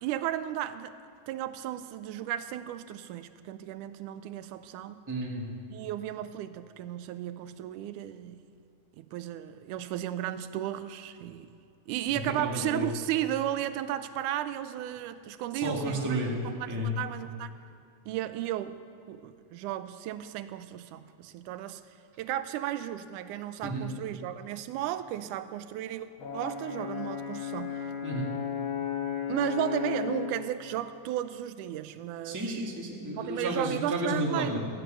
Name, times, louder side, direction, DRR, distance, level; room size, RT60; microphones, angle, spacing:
voice 1, 0.0-1.0 1.3-5.0 5.7-8.4 9.0-11.5 11.9-17.5 18.1-18.8 19.1-21.8 22.2-26.1 26.3-27.9 29.3-32.7 33.2-34.6, right 12 dB, 85° right, 12 dB, 2.0 m, -34 dB
voice 2, 5.1-5.5 12.4-12.9 15.5-16.9 23.6-23.9 28.0-28.3 32.2-34.6, right 1 dB, 10° right, -2 dB, 1.0 m, -32 dB
Brass instrument, 26.2-30.4, left 8 dB, 50° left, 1.8 m, -34 dB
14.0 x 7.7 x 8.9 m, 2.7 s
omnidirectional pair, 3.6 m